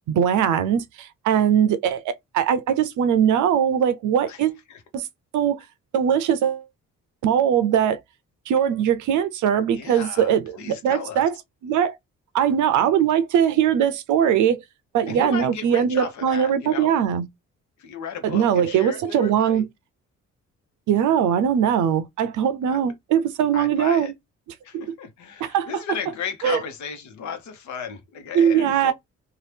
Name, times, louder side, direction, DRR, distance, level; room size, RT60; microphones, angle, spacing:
voice 1, 0.1-4.6 4.9-5.0 5.3-5.6 5.9-6.6 7.2-8.0 8.5-11.3 11.6-12.0 12.3-14.6 14.9-17.2 18.2-19.7 20.9-24.1 24.7-24.8 25.4-25.7 26.4-26.6 28.3-28.9, right 9 dB, 75° right, 0.5 m, -21 dB
voice 2, 9.7-11.2 15.1-16.9 17.8-19.7 22.7-22.9 23.5-24.1 24.6-28.9, left 7 dB, 70° left, 1.0 m, -35 dB
2.8 x 2.4 x 3.3 m
cardioid pair, 90°, 30 cm